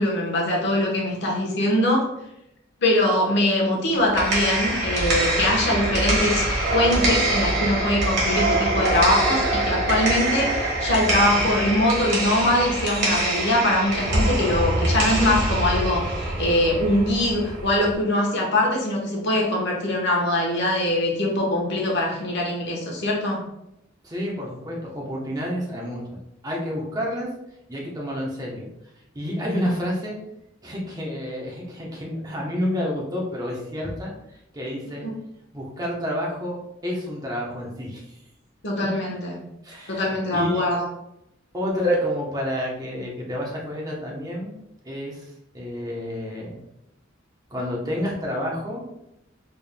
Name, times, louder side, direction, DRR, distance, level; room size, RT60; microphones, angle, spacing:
voice 1, 0.0-2.1 2.8-23.4 35.0-35.1 38.6-39.4 39.9-40.9, left 1 dB, 55° left, -2 dB, 1.0 m, -22 dB
sound 1, 3.9-17.9, right 1 dB, 55° right, 1.4 m, -24 dB
voice 2, 24.0-26.0 26.4-27.3 27.7-28.7 29.1-30.2 30.6-34.1 34.5-35.1 35.5-38.1 39.6-40.1 40.3-40.6 41.5-44.5 44.8-46.6 47.5-48.8, equal, 20° right, -3 dB, 0.9 m, -29 dB
4.3 x 3.5 x 2.2 m, 0.83 s
head